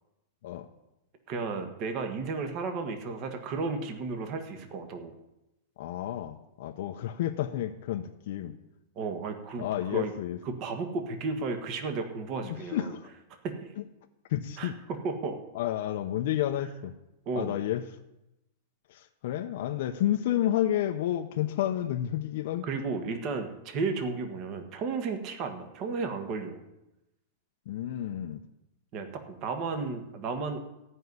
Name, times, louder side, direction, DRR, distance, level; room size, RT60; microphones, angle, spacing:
voice 1, 1.3-5.1 8.9-10.1 10.4-12.9 13.4-13.6 14.6-15.4 17.2-17.6 22.6-26.6 28.9-30.6, right 4 dB, 35° right, 6 dB, 1.5 m, -33 dB
voice 2, 5.8-8.5 9.6-10.4 12.7-13.0 14.3-14.7 15.5-16.9 17.4-17.8 19.2-22.6 27.7-28.4, left 12 dB, 60° left, 4 dB, 0.8 m, -30 dB
14.5 x 5.5 x 9.5 m, 0.92 s
supercardioid pair, 165°, 0 cm